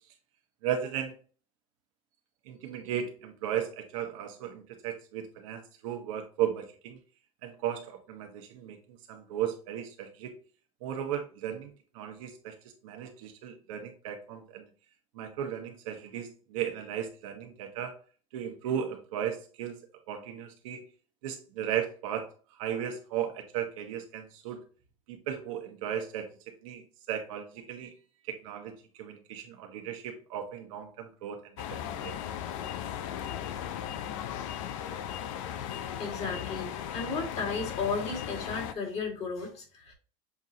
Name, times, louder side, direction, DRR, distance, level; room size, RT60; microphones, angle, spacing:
voice 1, 0.6-1.1 2.5-7.0 7.4-10.3 10.8-11.7 11.9-12.5 12.8-14.6 15.1-17.9 18.3-19.8 20.1-20.8 21.2-22.3 22.6-24.6 25.1-26.3 26.6-26.8 27.1-27.9 28.3-28.7 29.0-31.4 31.9-32.1, right 9 dB, 80° right, 4 dB, 1.1 m, -35 dB
sound 1, 31.6-38.7, left 10 dB, 80° left, 0.5 m, -37 dB
voice 2, 35.5-39.9, left 4 dB, 40° left, 1 dB, 2.0 m, -35 dB
7.0 x 2.5 x 2.7 m, 0.38 s
supercardioid pair, 115°, 17 cm